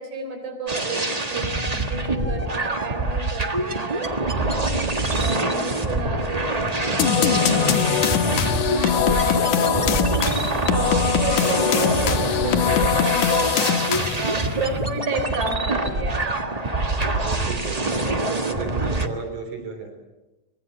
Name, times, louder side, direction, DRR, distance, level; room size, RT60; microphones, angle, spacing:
voice 1, 0.0-16.3, right 3 dB, 50° right, 5 dB, 4.6 m, -32 dB
sound 1, 0.7-19.1, right 2 dB, 35° right, 0.6 m, -25 dB
sound 2, 7.0-14.4, left 9 dB, 90° left, 2.8 m, -22 dB
voice 2, 7.7-8.1 17.2-19.9, right 4 dB, 90° right, 5 dB, 5.3 m, -34 dB
24.5 x 23.0 x 7.3 m, 1.0 s
omnidirectional pair, 3.4 m